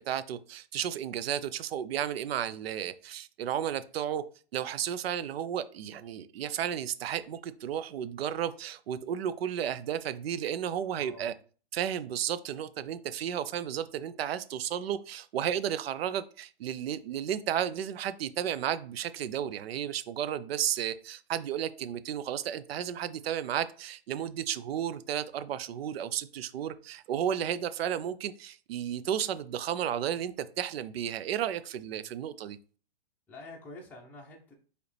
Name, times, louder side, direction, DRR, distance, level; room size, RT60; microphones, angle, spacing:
voice 1, 0.0-4.2 4.5-11.3 11.7-32.6, right 10 dB, 70° right, 14 dB, 0.5 m, -33 dB
voice 2, 11.0-11.3 31.9-32.1 33.3-34.5, left 2 dB, 5° left, -3 dB, 0.7 m, -48 dB
4.7 x 3.2 x 3.3 m, 0.39 s
hypercardioid pair, 145°, 31 cm